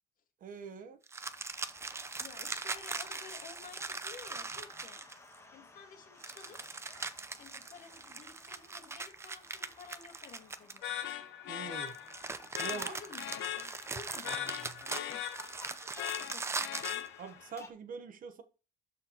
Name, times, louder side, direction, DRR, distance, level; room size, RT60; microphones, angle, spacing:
voice 1, 0.4-1.0 11.5-12.0 12.6-13.0 14.2-14.9 17.2-18.4, right 6 dB, 40° right, 1.0 m, -44 dB
sound 1, 1.1-5.4 6.2-11.1 11.8-17.1, right 4 dB, 15° right, 0.5 m, -41 dB
sound 2, 1.2-17.7, left 2 dB, 15° left, 1.2 m, -58 dB
voice 2, 2.2-5.0 5.5-6.8 7.4-11.0 12.6-14.3 14.8-15.2 16.0-17.1, left 6 dB, 40° left, 1.8 m, -53 dB
sound 3, 10.8-17.5, left 11 dB, 65° left, 0.8 m, -40 dB
12.0 x 4.3 x 2.9 m
cardioid pair, 145°, 21 cm